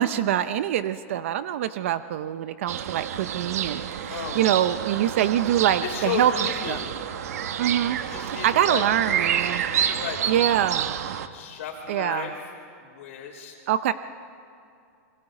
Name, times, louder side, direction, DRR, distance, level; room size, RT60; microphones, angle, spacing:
voice 1, 0.0-6.3 6.7-6.8 7.6-8.0 8.3-9.6 10.3-10.9 11.9-12.3 13.7-13.9, right 11 dB, 55° right, 12 dB, 0.6 m, -24 dB
sound 1, 2.7-11.3, right 9 dB, 75° right, 1.1 m, -29 dB
voice 2, 4.1-4.6 5.8-7.0 8.0-10.5 11.3-12.3 12.8-13.5, left 7 dB, 60° left, -6 dB, 3.3 m, -35 dB
29.5 x 22.5 x 5.0 m, 2.4 s
supercardioid pair, 170°, 8 cm